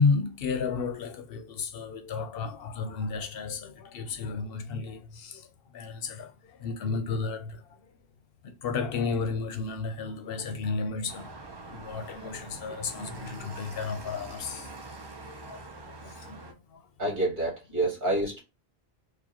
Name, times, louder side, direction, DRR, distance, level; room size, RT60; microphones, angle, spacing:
voice 1, 0.0-5.5 5.7-7.7 8.4-11.3 11.7-14.7 15.2-16.8 17.8-17.9, left 4 dB, 70° left, 0.7 m, -32 dB
sound 1, 11.1-16.5, right 3 dB, 30° right, 0.6 m, -44 dB
voice 2, 17.0-18.4, right 2 dB, 50° right, 1.7 m, -28 dB
4.7 x 2.3 x 2.8 m
omnidirectional pair, 1.0 m